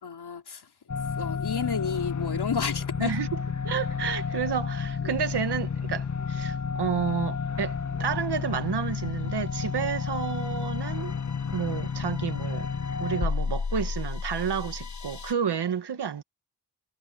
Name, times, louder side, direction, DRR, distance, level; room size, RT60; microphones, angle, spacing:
voice 1, 0.0-0.7 1.2-3.2 5.0-5.2, left 6 dB, 75° left, 4.2 m, -31 dB
sound 1, 0.9-15.3, left 5 dB, 45° left, 1.4 m, -31 dB
voice 2, 3.6-11.2 11.5-12.7 13.0-16.2, right 7 dB, 85° right, 1.6 m, -30 dB
wide cardioid pair, 75°, 39 cm